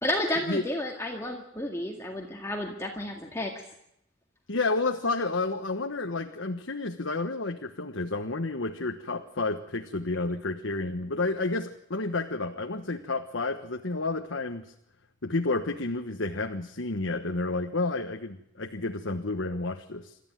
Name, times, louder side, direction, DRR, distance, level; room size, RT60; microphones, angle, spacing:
voice 1, 0.0-3.6, left 1 dB, 15° left, 1 dB, 2.0 m, -31 dB
voice 2, 4.5-14.7 15.2-20.1, left 3 dB, 85° left, 4 dB, 1.3 m, -30 dB
27.5 x 13.5 x 9.2 m, 0.79 s
head